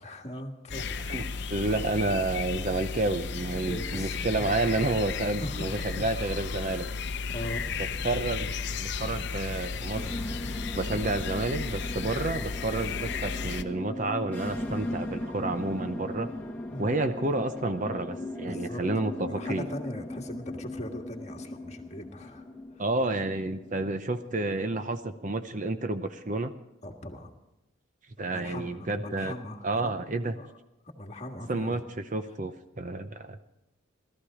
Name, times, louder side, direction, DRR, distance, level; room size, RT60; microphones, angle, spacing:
voice 1, 0.0-1.0 3.7-4.6 5.4-6.0 7.3-7.7 12.0-12.2 16.7-17.1 18.5-22.4 22.7-22.8 26.8-27.3 28.3-29.9 30.4-30.5 30.9-31.9, left 1 dB, 35° left, 3 dB, 1.6 m, -40 dB
sound 1, 0.7-13.6, left 5 dB, 55° left, 0.7 m, -34 dB
voice 2, 1.1-6.9 8.0-8.5 8.8-10.0 10.7-16.3 16.8-19.7 22.8-26.5 28.2-29.3 29.6-30.4 31.5-31.8 32.1-33.4, right 2 dB, 40° right, 9 dB, 0.7 m, -30 dB
Aircraft, 7.3-13.7, equal, 80° right, 5.7 m, -49 dB
sound 2, 9.9-23.9, left 1 dB, 10° left, 1.3 m, -38 dB
18.0 x 13.5 x 5.0 m, 0.92 s
head